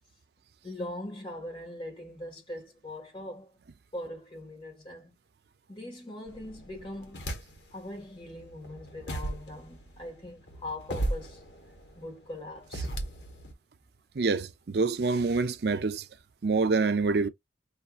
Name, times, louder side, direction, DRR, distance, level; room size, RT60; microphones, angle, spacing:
voice 1, 0.6-3.5 3.9-5.1 5.7-7.2 7.7-11.4 11.9-13.0, left 1 dB, 25° left, 1.7 m, -41 dB
sound 1, 6.3-7.8 8.2-13.5, right 1 dB, 70° left, 1.4 m, -37 dB
voice 2, 14.2-16.0 16.4-17.3, right 4 dB, 60° right, 0.5 m, -26 dB
5.5 x 2.7 x 2.4 m
head